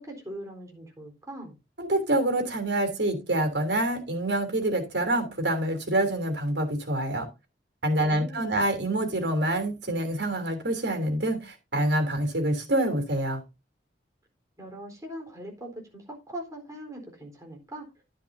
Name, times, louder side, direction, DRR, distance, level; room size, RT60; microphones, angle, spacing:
voice 1, 0.0-1.5 8.0-8.7 14.6-17.9, right 1 dB, 20° right, 1 dB, 4.0 m, -41 dB
voice 2, 1.8-7.3 7.8-13.4, right 1 dB, 75° right, 5 dB, 3.1 m, -26 dB
12.0 x 10.0 x 2.7 m, 0.25 s
head